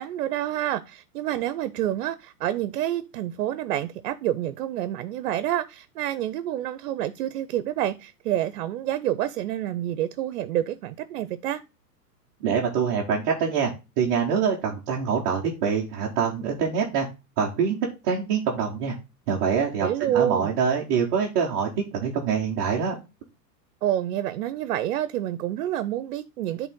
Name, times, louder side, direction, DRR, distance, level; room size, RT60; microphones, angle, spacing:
voice 1, 0.0-11.6 19.8-20.5 23.8-26.7, right 12 dB, 55° right, 0.6 m, -28 dB
voice 2, 12.4-17.1 17.4-17.8 18.0-18.9 19.3-23.0, right 6 dB, 15° right, 0.3 m, -25 dB
8.6 x 3.4 x 3.6 m
hypercardioid pair, 115°, 49 cm